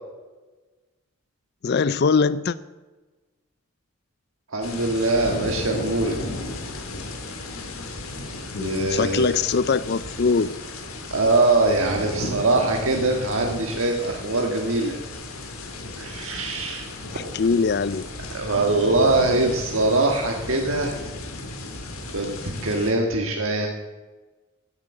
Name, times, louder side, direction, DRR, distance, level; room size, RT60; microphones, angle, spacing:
voice 1, 1.6-2.6 8.5-10.5 17.1-18.1, left 5 dB, 50° left, 16 dB, 0.4 m, -22 dB
voice 2, 4.5-6.2 8.6-9.4 11.1-15.0 16.0-16.9 18.3-21.0 22.1-22.4 22.6-23.7, right 2 dB, 75° right, 1 dB, 1.6 m, -22 dB
sound 1, 4.6-22.9, left 2 dB, 85° left, 2.4 m, -35 dB
16.0 x 8.0 x 7.6 m, 1.2 s
head